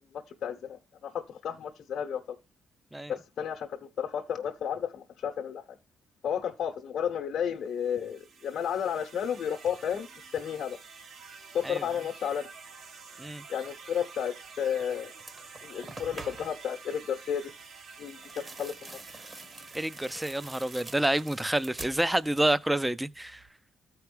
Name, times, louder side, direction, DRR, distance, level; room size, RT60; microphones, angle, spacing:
voice 1, 0.1-2.4 3.1-5.8 6.2-10.8 11.5-12.5 13.5-15.1 15.6-17.5 18.0-19.0, left 8 dB, 65° left, 0.9 m, -32 dB
sound 1, 7.7-22.8, right 5 dB, 65° right, 1.2 m, -49 dB
sound 2, 14.7-14.9 15.2-16.7 18.0-22.6 22.9-23.5, right 2 dB, 30° right, 1.1 m, -46 dB
voice 2, 19.7-23.4, right 1 dB, 10° right, 0.5 m, -28 dB
14.0 x 4.7 x 3.3 m
cardioid pair, 90°, 0 cm